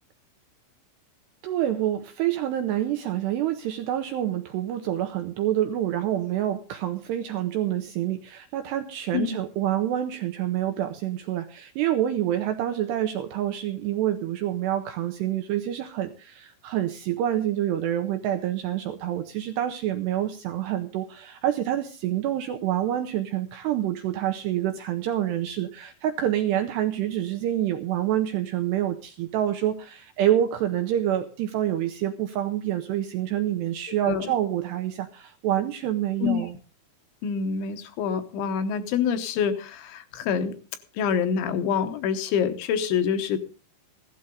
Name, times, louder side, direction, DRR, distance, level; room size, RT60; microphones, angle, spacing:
voice 1, 1.4-36.5, right 12 dB, 85° right, 7 dB, 2.4 m, -27 dB
voice 2, 37.2-40.5 41.0-43.4, left 7 dB, 75° left, 9 dB, 3.1 m, -26 dB
16.0 x 12.5 x 3.7 m, 0.37 s
omnidirectional pair, 5.9 m